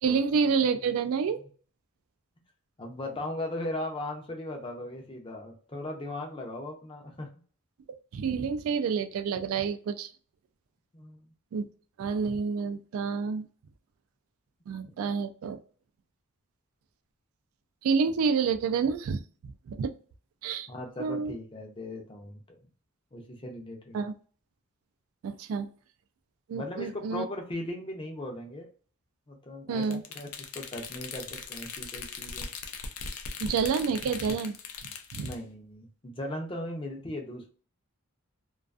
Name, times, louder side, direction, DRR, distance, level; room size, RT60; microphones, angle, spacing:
voice 1, 0.0-1.4 8.1-10.1 11.5-11.7 12.0-13.5 14.7-15.6 17.8-19.9 20.4-20.7 21.0-21.3 23.9-24.1 25.2-25.7 26.5-27.2 29.7-30.0 33.4-34.6 35.1-35.3, right 5 dB, 75° right, 11 dB, 0.3 m, -28 dB
voice 2, 2.8-7.3 10.9-11.3 20.7-22.6 23.1-24.0 26.5-28.7 29.3-32.5 35.2-37.5, left 1 dB, 25° left, 2 dB, 0.5 m, -38 dB
sound 1, 29.8-35.4, left 5 dB, 90° left, 0.4 m, -40 dB
2.4 x 2.3 x 2.3 m, 0.43 s
head